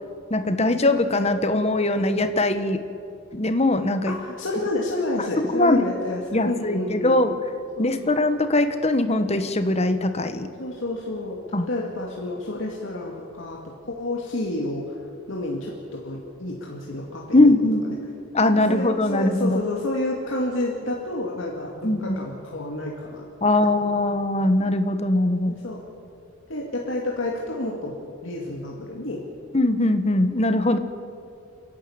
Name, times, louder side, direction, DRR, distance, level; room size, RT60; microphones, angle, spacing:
voice 1, 0.3-2.8 3.3-4.1 5.4-5.8 6.3-7.3 7.8-10.5 11.5-11.7 17.3-17.9 18.3-19.6 21.8-22.2 23.4-25.6 29.5-30.8, left 2 dB, 30° left, 9 dB, 1.2 m, -21 dB
voice 2, 4.1-7.2 7.8-8.1 10.6-14.8 15.3-17.5 18.7-23.2 25.5-25.8 26.5-28.0 28.2-29.2, left 1 dB, 65° left, -2 dB, 2.3 m, -30 dB
30.0 x 11.5 x 8.7 m, 2.5 s
head